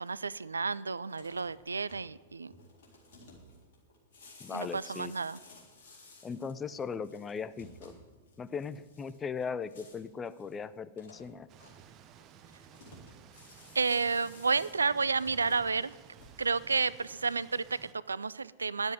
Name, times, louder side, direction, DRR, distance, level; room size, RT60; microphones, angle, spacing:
voice 1, 0.0-2.5 4.5-5.4 13.7-15.9 16.4-18.9, right 4 dB, 75° right, 19 dB, 0.3 m, -31 dB
sound 1, 1.1-16.7, left 2 dB, 55° left, 3.7 m, -56 dB
voice 2, 4.4-5.1 6.2-7.9 8.4-11.5, left 6 dB, 20° left, 14 dB, 0.5 m, -38 dB
sound 2, 11.5-17.9, right 9 dB, 30° right, 0.8 m, -56 dB
10.5 x 7.9 x 9.5 m, 1.4 s
figure-of-eight pair, 100°, 0 cm